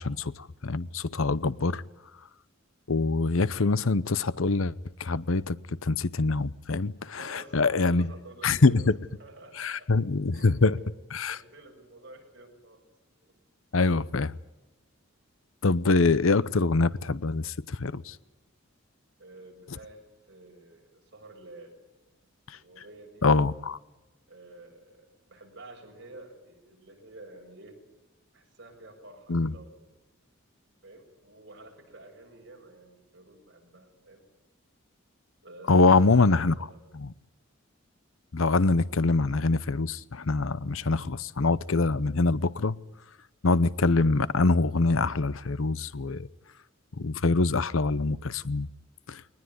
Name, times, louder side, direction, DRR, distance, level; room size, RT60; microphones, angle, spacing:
voice 1, 0.0-1.8 2.9-4.7 5.0-5.6 5.8-8.1 8.4-8.9 9.6-10.7 11.1-11.4 13.7-14.3 15.6-18.1 23.2-23.8 29.3-29.5 35.7-36.5 38.3-42.8 43.4-46.3 47.0-48.7 49.1-49.2, left 3 dB, 75° left, 0.8 m, -24 dB
voice 2, 7.1-8.9 9.2-9.9 10.3-10.9 11.3-12.9 13.2-13.3 19.2-21.8 22.5-23.3 24.3-27.8 28.3-29.8 30.8-34.2 35.4-36.8, right 2 dB, 55° right, 7.3 m, -50 dB
22.0 x 20.0 x 9.6 m
head